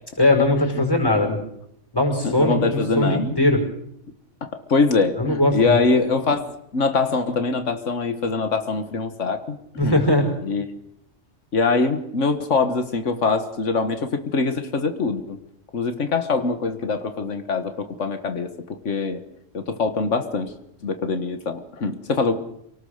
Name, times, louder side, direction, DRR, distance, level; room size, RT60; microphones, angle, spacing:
voice 1, 0.2-1.4 1.9-3.6 5.2-5.8 9.8-10.3, left 1 dB, 20° left, 3 dB, 5.5 m, -20 dB
voice 2, 2.2-3.4 4.4-9.6 9.8-10.0 10.4-10.6 11.5-15.4 15.7-19.2 19.5-20.5 20.8-22.3, left 4 dB, 90° left, 8 dB, 1.8 m, -23 dB
27.5 x 19.0 x 6.6 m, 0.74 s
omnidirectional pair, 1.2 m